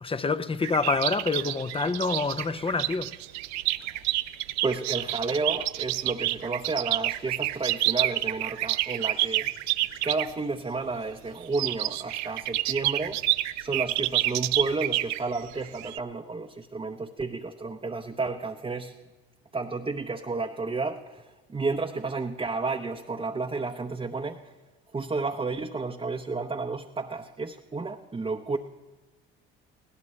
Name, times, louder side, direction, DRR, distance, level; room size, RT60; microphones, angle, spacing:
voice 1, 0.0-3.2, left 4 dB, 20° left, 0.7 m, -27 dB
sound 1, 0.6-10.3 11.4-16.0, right 16 dB, 65° right, 0.6 m, -28 dB
voice 2, 4.6-9.5 10.0-13.2 13.6-18.9 19.5-24.5 24.9-28.6, right 3 dB, 20° right, 0.9 m, -31 dB
20.5 x 16.5 x 3.3 m
hypercardioid pair, 65°, 30 cm